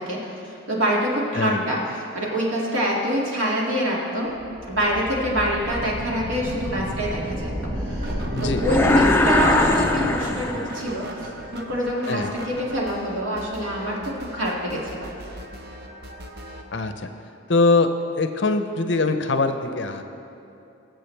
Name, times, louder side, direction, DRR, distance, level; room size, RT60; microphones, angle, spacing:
voice 1, 0.0-4.4 4.7-15.1, equal, 75° right, -4 dB, 2.3 m, -26 dB
sound 1, 4.3-10.8, equal, 35° right, 1.3 m, -30 dB
sound 2, 8.0-16.6, right 1 dB, 50° right, 0.9 m, -39 dB
voice 2, 8.3-8.6 12.1-12.3 16.7-16.9 17.5-17.9 18.2-20.0, left 3 dB, 60° left, 8 dB, 0.7 m, -22 dB
sound 3, 8.6-11.0, left 2 dB, 10° left, 0.4 m, -21 dB
20.5 x 7.7 x 3.4 m, 2.8 s
head